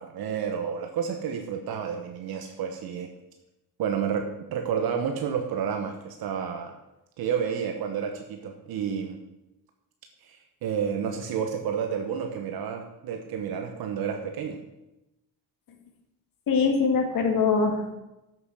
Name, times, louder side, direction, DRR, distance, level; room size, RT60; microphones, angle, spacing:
voice 1, 0.0-3.1 3.8-6.8 7.2-9.2 10.2-14.6, right 7 dB, 75° right, 4 dB, 1.3 m, -30 dB
voice 2, 16.5-17.9, left 5 dB, 65° left, 4 dB, 2.2 m, -23 dB
7.9 x 7.8 x 6.2 m, 0.94 s
cardioid pair, 115°, 36 cm